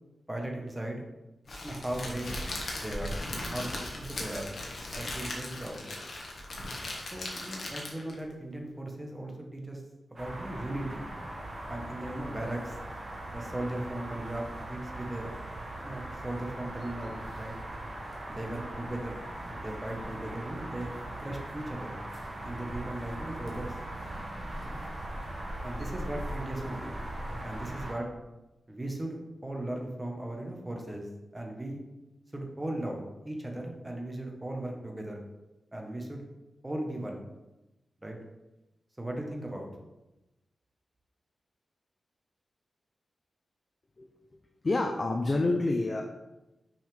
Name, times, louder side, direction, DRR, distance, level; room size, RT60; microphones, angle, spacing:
voice 1, 0.3-1.0 1.6-2.3 2.7-4.5 4.9-5.8 7.1-9.8 10.1-11.1 11.7-12.8 13.3-15.3 15.8-17.5 18.3-19.2 19.5-20.9 21.2-22.0 22.4-23.8 24.6-24.8 25.6-27.0 27.4-28.1 28.7-31.1 31.3-31.8 32.3-35.2 35.7-36.2 36.6-37.2 38.0-38.2 39.0-39.7, right 1 dB, 15° right, 1 dB, 1.2 m, -37 dB
Crackle, 1.5-8.2, left 1 dB, 55° left, 1.4 m, -38 dB
sound 1, 10.2-27.9, right 1 dB, 35° right, 1.7 m, -40 dB
voice 2, 44.6-46.0, left 2 dB, 35° left, 3 dB, 0.6 m, -27 dB
6.1 x 5.6 x 3.5 m, 0.99 s
wide cardioid pair, 115°, 0 cm